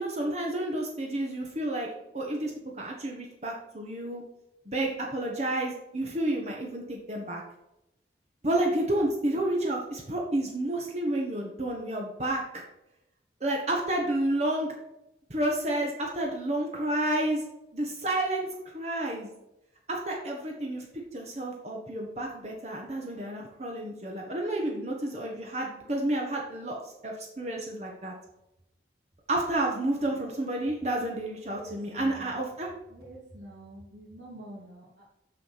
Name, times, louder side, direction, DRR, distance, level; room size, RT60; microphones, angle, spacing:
voice 1, 0.0-1.9 2.1-2.5 2.8-4.2 4.6-7.4 8.4-12.4 13.4-14.7 15.3-17.4 17.7-18.5 18.7-19.3 19.9-20.8 21.1-28.1 29.3-32.7, right 1 dB, 40° right, -1 dB, 1.4 m, -30 dB
voice 2, 31.5-32.4 32.9-35.0, right 1 dB, 70° right, -6 dB, 2.8 m, -46 dB
7.3 x 6.6 x 5.8 m, 0.89 s
head